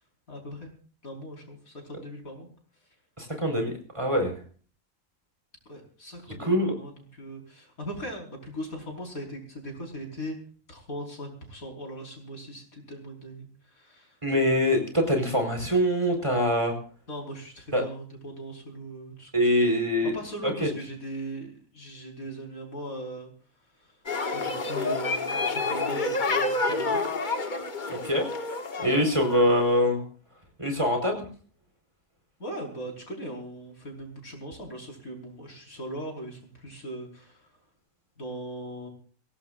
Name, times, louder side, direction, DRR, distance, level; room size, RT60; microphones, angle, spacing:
voice 1, 0.3-0.7 1.0-2.5 5.7-10.4 10.7-14.2 17.1-19.6 20.0-23.3 23.8-24.0 24.3-27.0 28.8-29.0 32.4-37.5 38.2-38.9, right 1 dB, 80° left, 1 dB, 5.5 m, -39 dB
voice 2, 3.2-4.4 6.4-6.7 14.2-16.7 17.7-17.8 19.3-20.1 20.6-20.7 27.9-28.3 28.8-30.0 30.6-31.2, equal, 20° right, 3 dB, 4.5 m, -24 dB
sound 1, 24.1-29.7, left 3 dB, 35° left, 1.3 m, -29 dB
23.0 x 18.0 x 2.6 m, 0.42 s
omnidirectional pair, 1.5 m